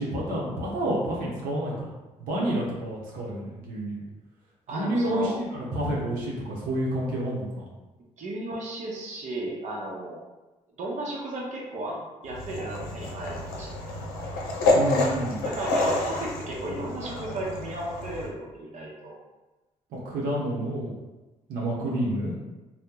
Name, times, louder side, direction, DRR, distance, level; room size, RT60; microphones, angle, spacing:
voice 1, 0.0-1.9 2.2-4.0 4.7-7.6 14.7-15.4 20.0-20.9 21.5-22.3, right 1 dB, 85° right, -5 dB, 0.8 m, -29 dB
voice 2, 4.7-5.4 8.2-10.2 10.8-14.2 15.4-19.2, right 1 dB, 55° right, -3 dB, 0.8 m, -34 dB
sound 1, 12.2-18.3, left 2 dB, 90° left, 0.6 m, -28 dB
2.8 x 2.1 x 3.6 m, 1.1 s
supercardioid pair, 70°, 14 cm